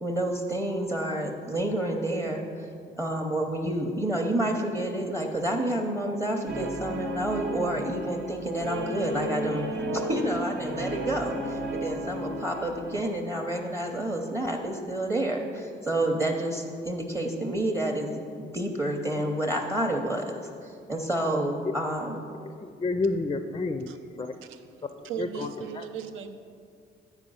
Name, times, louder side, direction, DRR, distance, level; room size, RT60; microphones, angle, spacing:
voice 1, 0.0-2.7 3.0-9.7 9.9-18.1 18.4-22.2, right 1 dB, 15° right, 2 dB, 0.7 m, -29 dB
Guitar, 6.5-13.0, right 1 dB, 65° right, 1.0 m, -33 dB
voice 2, 22.4-23.9 24.1-24.3 25.0-25.9, left 3 dB, 25° left, 8 dB, 0.4 m, -30 dB
voice 3, 24.5-26.3, right 8 dB, 85° right, 8 dB, 0.6 m, -37 dB
8.9 x 4.7 x 5.5 m, 2.4 s
cardioid pair, 90°, 20 cm